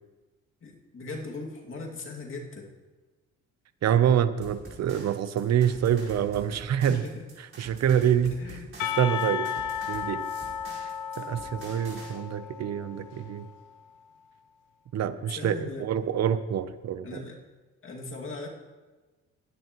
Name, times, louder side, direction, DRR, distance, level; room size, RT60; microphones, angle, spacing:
voice 1, 0.6-2.7 6.5-6.6 6.9-7.1 8.4-8.7 15.4-16.0 17.0-17.4 17.8-18.5, left 3 dB, 45° left, -1 dB, 2.4 m, -39 dB
voice 2, 3.8-7.0 7.6-8.6 9.0-9.5 9.9-10.3 10.8-10.9 11.2-13.5 14.9-17.2, right 9 dB, 60° right, 13 dB, 0.8 m, -26 dB
sound 1, 4.4-12.1, right 3 dB, 45° right, 4.9 m, -46 dB
Percussion, 8.8-13.6, left 8 dB, 85° left, 0.8 m, -34 dB
20.0 x 10.0 x 3.1 m, 1.2 s
cardioid pair, 90°, 30 cm